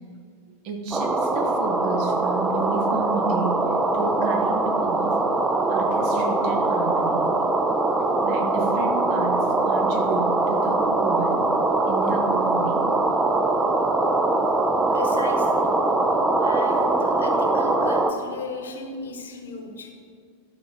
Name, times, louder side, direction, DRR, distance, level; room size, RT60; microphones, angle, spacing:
voice 1, 0.6-3.6 3.9-5.2 5.7-7.5 8.2-11.4 11.9-12.9 16.7-16.8, right 3 dB, 45° right, 4 dB, 1.1 m, -31 dB
sound 1, 0.9-18.1, right 2 dB, 15° right, 0.5 m, -22 dB
voice 2, 14.9-15.7 16.4-19.9, left 4 dB, 65° left, 4 dB, 1.1 m, -36 dB
12.0 x 5.4 x 3.9 m, 2.2 s
figure-of-eight pair, 90°, 0 cm